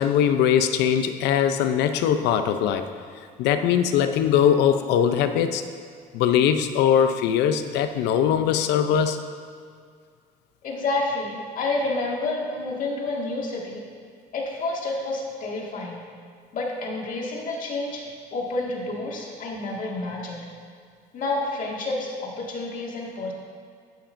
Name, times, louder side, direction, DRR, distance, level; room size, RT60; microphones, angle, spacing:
voice 1, 0.0-2.9 3.4-5.6 6.1-9.2, left 9 dB, 85° left, 9 dB, 0.6 m, -21 dB
voice 2, 10.6-13.8 14.3-16.0 16.5-18.0 18.3-20.5 21.1-23.3, left 2 dB, 55° left, -2 dB, 1.9 m, -29 dB
11.5 x 9.1 x 2.6 m, 2.1 s
cardioid pair, 110°, 17 cm